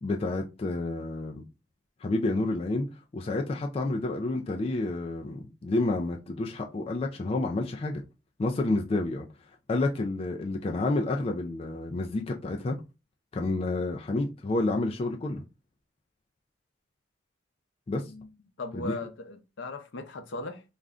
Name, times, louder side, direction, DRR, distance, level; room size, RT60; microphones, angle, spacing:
voice 1, 0.0-1.4 2.0-2.9 3.1-8.0 8.4-9.3 9.7-12.8 13.3-15.4 17.9-18.0 18.7-19.0, left 2 dB, 30° left, 0.3 m, -29 dB
voice 2, 18.6-20.6, left 2 dB, 75° left, 0.6 m, -38 dB
2.4 x 2.1 x 3.5 m
head